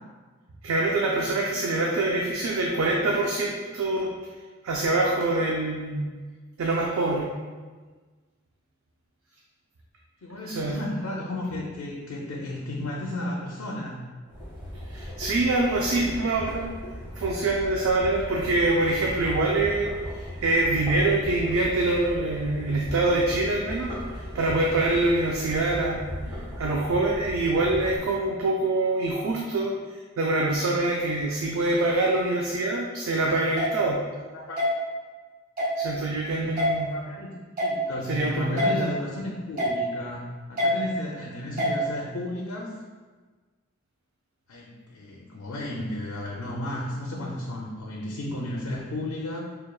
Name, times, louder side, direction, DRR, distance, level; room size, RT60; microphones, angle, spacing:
voice 1, 0.6-4.1 4.6-6.1 6.6-7.3 10.4-10.8 14.9-16.7 17.2-29.7 30.2-34.0 35.8-37.0 38.1-38.9, right 2 dB, 70° right, -2 dB, 0.4 m, -25 dB
voice 2, 10.2-14.0 34.2-34.6 36.9-40.2 40.5-42.7 44.5-49.4, left 1 dB, 85° left, -2 dB, 0.5 m, -33 dB
sound 1, 14.3-28.0, equal, 20° right, 1.1 m, -37 dB
sound 2, 33.6-33.7 34.6-34.7 35.6-35.7 36.6-36.7 37.6-37.7 38.6-38.7 39.6-39.7 40.6-40.7 41.6-41.7, left 1 dB, 40° right, 0.9 m, -24 dB
4.9 x 2.3 x 2.3 m, 1.4 s
head